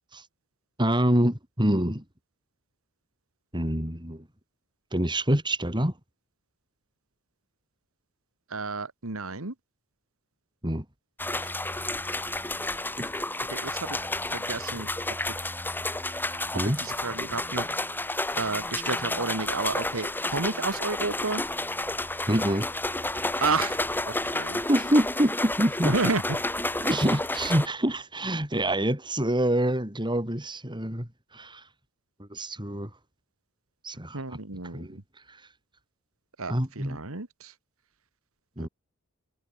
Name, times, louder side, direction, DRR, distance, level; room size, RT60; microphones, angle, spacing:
voice 1, 0.8-2.0 3.5-4.2 4.9-5.9 10.6-10.8 11.4-11.5 13.0-13.1 16.5-16.8 22.3-22.7 24.7-25.9 26.8-31.6 32.2-32.9 33.8-34.4 34.7-35.0 35.3-35.4 36.5-37.0 38.6-38.7, right 1 dB, 20° right, 7.5 m, -26 dB
voice 2, 8.5-9.5 13.5-14.0 14.3-14.9 16.6-17.7 18.3-21.4 23.4-23.8 24.1-24.6 25.9-26.4 34.1-35.0 36.4-37.5 38.6-38.7, right 3 dB, 70° right, 2.3 m, -31 dB
sound 1, 11.2-27.7, left 2 dB, 10° left, 3.5 m, -31 dB
head